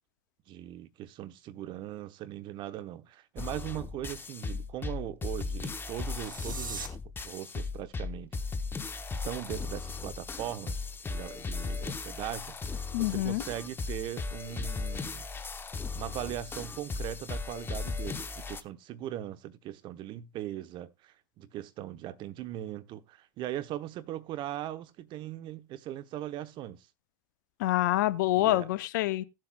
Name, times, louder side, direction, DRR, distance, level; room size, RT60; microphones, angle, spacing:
voice 1, 0.5-7.0 7.2-8.4 9.2-15.3 15.9-26.9 28.3-28.7, right 12 dB, 50° right, 0.9 m, -39 dB
sound 1, 3.4-18.6, left 4 dB, 20° left, 0.9 m, -37 dB
sound 2, 5.9-6.9, right 4 dB, 85° right, 1.3 m, -41 dB
voice 2, 12.9-13.4 27.6-29.2, left 16 dB, 70° left, 0.7 m, -26 dB
17.5 x 7.6 x 2.3 m
hypercardioid pair, 75°, 11 cm